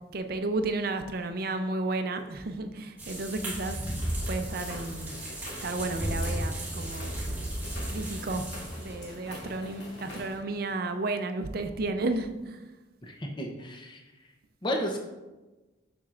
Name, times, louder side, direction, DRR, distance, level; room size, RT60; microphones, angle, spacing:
voice 1, 0.1-3.8 4.3-5.1 5.6-7.1 7.9-8.4 8.8-12.6, right 2 dB, 50° right, 7 dB, 0.5 m, -32 dB
sound 1, 3.0-9.0, right 1 dB, 10° right, 1.3 m, -34 dB
sound 2, 4.0-10.4, left 1 dB, 65° left, 2.2 m, -45 dB
voice 2, 13.0-14.0 14.6-15.0, equal, 25° left, 2 dB, 0.7 m, -32 dB
7.2 x 6.1 x 2.5 m, 1.1 s
head